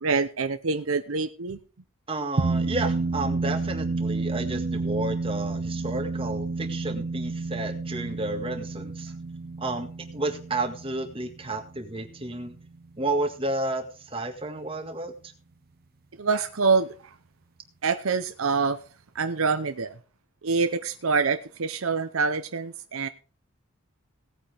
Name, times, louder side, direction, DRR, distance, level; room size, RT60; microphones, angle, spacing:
voice 1, 0.0-1.6 16.2-16.9 17.8-18.8 19.2-19.9 20.4-23.1, right 4 dB, 85° right, 9 dB, 0.8 m, -25 dB
voice 2, 2.1-9.1 9.6-9.9 10.1-12.5 13.0-15.1, right 2 dB, 25° right, 6 dB, 1.9 m, -31 dB
sound 1, 2.4-13.1, right 3 dB, 45° right, 0.5 m, -31 dB
18.0 x 8.9 x 3.5 m, 0.37 s
head